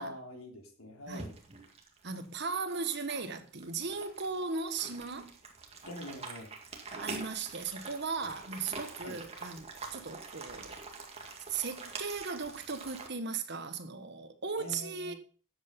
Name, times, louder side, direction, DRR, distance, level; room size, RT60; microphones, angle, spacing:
voice 1, 0.0-1.4 5.8-6.5 9.0-9.2 14.6-15.2, left 1 dB, 85° left, 3.4 m, -44 dB
sound 1, 1.1-13.1, right 3 dB, 30° right, 2.0 m, -45 dB
voice 2, 2.0-5.3 6.9-10.8 11.5-15.1, right 4 dB, 55° right, 1.4 m, -37 dB
12.5 x 8.1 x 5.4 m
head